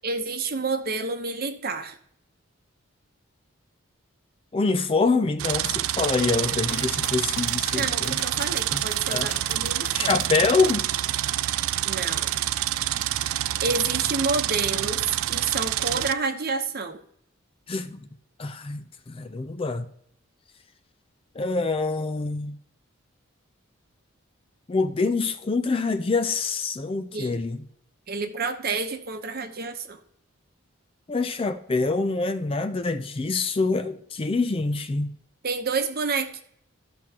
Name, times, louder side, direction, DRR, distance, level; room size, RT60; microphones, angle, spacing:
voice 1, 0.0-2.0 7.7-10.1 11.8-12.3 13.6-17.0 27.1-27.4 28.1-30.0 35.4-36.4, right 4 dB, 45° right, 0.9 m, -29 dB
voice 2, 4.5-8.2 9.1-9.3 9.9-10.9 17.7-18.0 18.4-19.9 21.4-22.6 24.7-27.6 31.1-35.1, left 3 dB, 25° left, 0.4 m, -25 dB
sound 1, 5.4-16.1, right 13 dB, 80° right, 0.3 m, -27 dB
sound 2, 6.7-11.0 11.4-12.0, left 4 dB, 70° left, 1.4 m, -43 dB
14.0 x 6.0 x 2.9 m
head